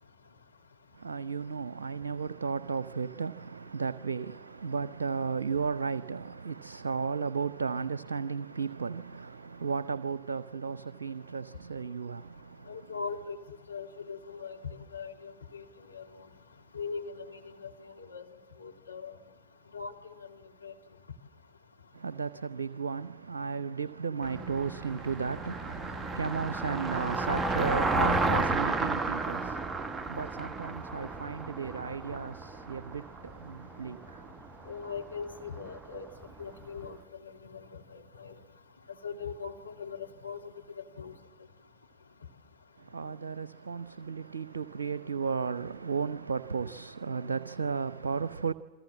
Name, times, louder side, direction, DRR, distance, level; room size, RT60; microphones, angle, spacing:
voice 1, 0.9-12.9 21.9-34.7 42.8-48.5, right 5 dB, 70° right, 0.7 m, -34 dB
voice 2, 12.7-13.4 13.7-15.6 15.9-16.0 16.7-17.4 18.0-18.2 18.6-19.2 19.7-19.9 20.6-20.7 34.7-36.1 36.4-37.0 37.5-37.6 37.9-38.3 39.0-40.4 41.0-41.1, left 5 dB, 80° left, 2.3 m, -40 dB
Car passing by, 24.2-36.5, right 3 dB, 10° right, 1.2 m, -33 dB
28.5 x 23.5 x 7.5 m
figure-of-eight pair, 90°, 0 cm